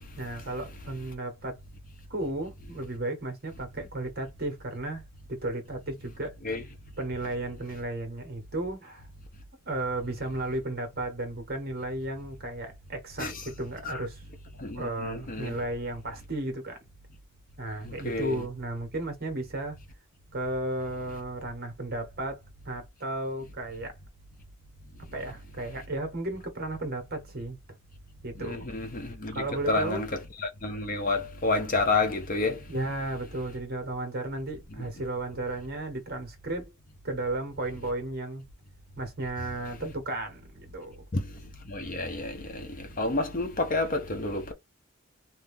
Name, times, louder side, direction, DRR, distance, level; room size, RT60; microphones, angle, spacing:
voice 1, 0.2-1.6 2.1-6.4 7.0-9.1 9.7-14.2 14.7-16.8 17.6-19.8 20.3-24.0 25.1-27.6 28.2-28.7 29.3-30.1 32.7-36.7 37.0-38.4 39.0-41.0, right 2 dB, 50° right, 1.3 m, -34 dB
voice 2, 14.6-15.6 17.8-18.4 28.4-32.6 34.8-34.9 41.1-41.3 41.7-44.5, left 3 dB, 45° left, 0.8 m, -30 dB
2.7 x 2.7 x 3.5 m
head